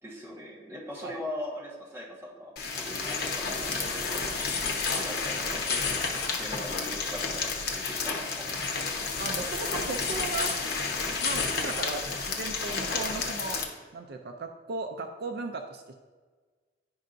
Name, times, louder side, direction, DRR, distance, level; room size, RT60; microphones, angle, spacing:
voice 1, 0.0-8.5, left 1 dB, 15° right, -4 dB, 1.3 m, -41 dB
sound 1, 2.6-13.6, left 4 dB, 60° left, 0.9 m, -31 dB
voice 2, 9.2-10.6 11.2-13.6 13.9-15.9, right 3 dB, 60° right, 5 dB, 0.4 m, -36 dB
10.5 x 5.4 x 2.6 m, 1.4 s
head